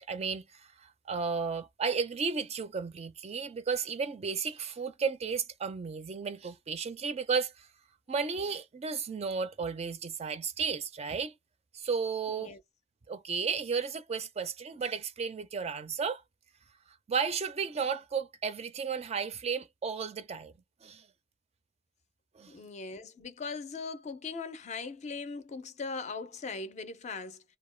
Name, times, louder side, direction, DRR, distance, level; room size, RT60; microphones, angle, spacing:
voice 1, 0.0-7.7 8.1-11.3 11.7-12.6 13.1-16.2 17.1-20.5 20.8-21.1 22.3-22.5, right 5 dB, 35° right, 0.4 m, -33 dB
voice 2, 12.3-12.6 22.5-27.4, left 4 dB, 40° left, 0.4 m, -39 dB
2.3 x 2.1 x 3.2 m
head